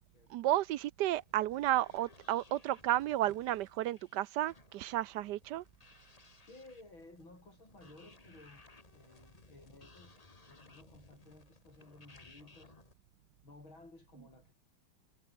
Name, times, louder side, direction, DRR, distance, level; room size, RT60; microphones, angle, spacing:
voice 1, 0.3-5.6, right 14 dB, 75° right, 1.0 m, -32 dB
sound 1, 1.0-12.9, left 3 dB, 20° left, 1.6 m, -61 dB
voice 2, 6.4-8.7 8.9-12.8 13.4-14.5, left 2 dB, 75° left, 8.5 m, -57 dB
omnidirectional pair, 2.2 m